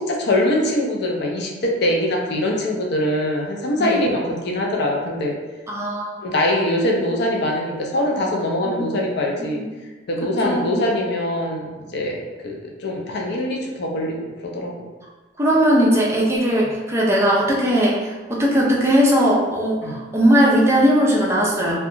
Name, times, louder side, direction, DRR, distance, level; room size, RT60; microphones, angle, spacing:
voice 1, 0.0-5.4 6.2-9.6 10.1-14.7 19.8-19.9, left 1 dB, 60° left, 0 dB, 0.4 m, -23 dB
voice 2, 5.7-6.2 9.6-9.7 10.4-10.7 15.4-21.8, equal, 15° right, -5 dB, 0.4 m, -18 dB
2.7 x 2.2 x 2.5 m, 1.2 s
head